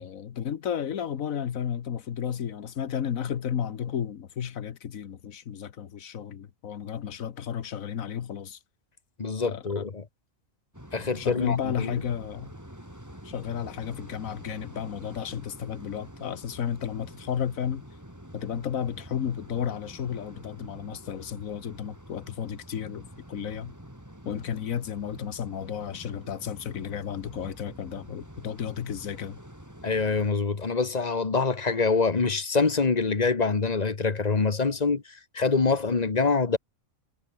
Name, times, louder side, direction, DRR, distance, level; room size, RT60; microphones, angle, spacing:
voice 1, 0.0-8.6 9.4-9.8 11.2-12.5 13.2-17.8 18.3-23.7 24.2-29.4, left 8 dB, 80° left, 1.5 m, -33 dB
voice 2, 9.2-10.0 10.9-11.9 29.8-35.0 35.3-36.6, left 4 dB, 30° left, 1.3 m, -25 dB
sound 1, 10.7-30.3, equal, 10° right, 7.2 m, -46 dB
omnidirectional pair, 1.4 m